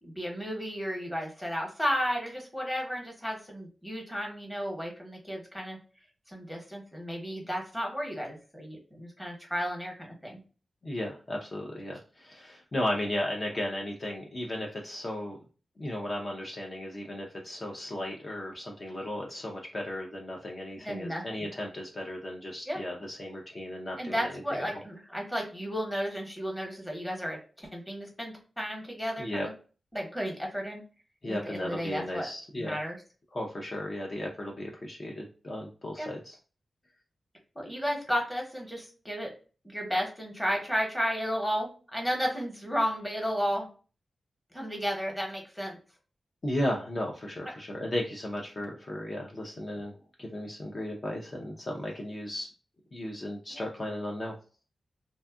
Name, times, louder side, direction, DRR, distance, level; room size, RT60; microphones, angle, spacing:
voice 1, 0.0-5.8 6.3-10.4 20.8-21.5 22.7-22.8 24.0-29.5 29.9-30.8 31.3-32.3 32.6-33.0 36.0-36.1 37.5-39.3 39.6-43.7 44.5-45.8 53.5-53.6, equal, 5° left, 0 dB, 0.9 m, -33 dB
voice 2, 10.8-15.4 15.8-24.6 29.2-29.5 31.2-32.8 33.3-36.4 46.4-52.5 52.9-54.3, left 1 dB, 40° left, -1 dB, 0.5 m, -35 dB
2.6 x 2.3 x 2.3 m, 0.36 s
wide cardioid pair, 100°, 0 cm